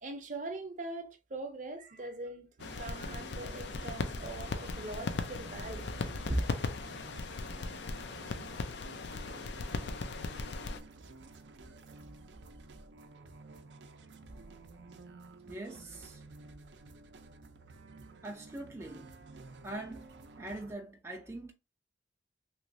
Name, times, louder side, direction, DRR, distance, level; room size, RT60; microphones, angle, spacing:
voice 1, 0.0-2.5 2.8-6.4, right 2 dB, 45° right, 0.7 m, -40 dB
sound 1, 2.6-10.8, left 3 dB, 75° left, 0.5 m, -38 dB
sound 2, 2.6-20.7, right 3 dB, 85° right, 0.5 m, -51 dB
voice 2, 15.5-16.2 18.2-19.1 19.6-21.5, right 2 dB, 15° right, 0.4 m, -43 dB
3.1 x 3.0 x 2.6 m
head